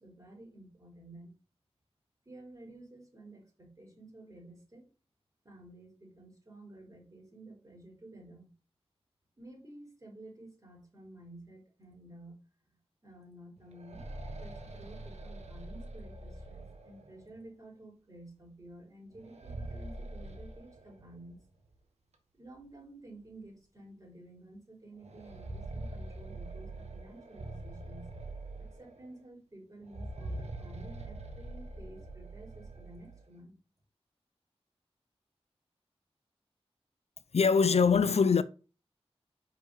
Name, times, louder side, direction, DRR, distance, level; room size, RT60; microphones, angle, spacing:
voice 1, 0.0-1.3 2.2-4.9 5.4-8.5 9.4-12.4 13.0-21.4 22.3-28.1 28.8-33.5, right 1 dB, 35° right, 4.4 m, -52 dB
sound 1, 13.6-17.4 19.1-21.3 21.7-21.8 22.6-22.7 23.2-23.4 25.0-29.1 29.8-33.2, right 2 dB, 90° right, 1.4 m, -44 dB
voice 2, 37.3-38.4, left 5 dB, 75° left, 0.6 m, -23 dB
6.1 x 5.5 x 6.6 m
wide cardioid pair, 75°, 11 cm